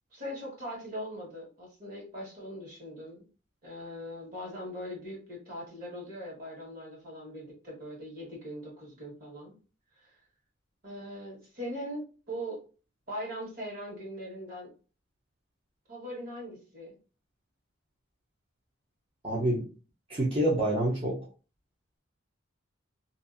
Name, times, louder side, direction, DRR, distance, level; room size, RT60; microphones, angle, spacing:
voice 1, 0.1-3.2 3.6-9.6 9.9-10.2 10.8-12.6 13.1-14.7 15.9-16.9, equal, 50° right, -2 dB, 1.4 m, -40 dB
voice 2, 19.2-19.7 20.1-21.2, right 1 dB, 30° right, -6 dB, 0.6 m, -27 dB
2.6 x 2.4 x 2.4 m, 0.35 s
head